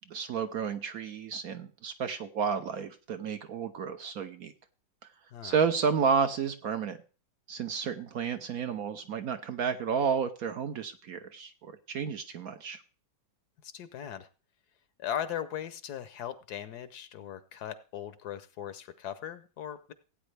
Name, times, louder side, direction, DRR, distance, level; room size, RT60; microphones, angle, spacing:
voice 1, 0.1-4.5 5.4-7.0 7.5-12.8, right 6 dB, 65° right, 8 dB, 1.0 m, -31 dB
voice 2, 13.6-14.3 15.0-19.9, left 10 dB, 65° left, 13 dB, 1.2 m, -38 dB
16.5 x 8.9 x 3.3 m, 0.36 s
omnidirectional pair, 2.0 m